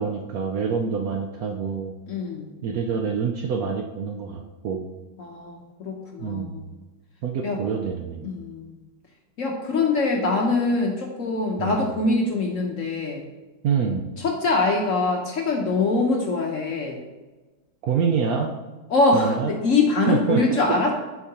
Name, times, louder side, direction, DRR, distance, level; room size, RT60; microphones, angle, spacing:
voice 1, 0.0-1.9 2.6-4.9 6.2-6.7 7.2-8.3 11.6-11.8 13.6-14.1 17.8-18.6 19.1-19.6 20.1-20.4, right 6 dB, 70° right, 3 dB, 0.9 m, -26 dB
voice 2, 2.1-2.5 5.2-6.6 7.4-7.6 8.2-8.7 9.4-13.2 14.2-17.0 18.9-20.9, left 3 dB, 55° left, 1 dB, 1.0 m, -23 dB
10.0 x 4.6 x 2.9 m, 1.2 s
omnidirectional pair, 2.0 m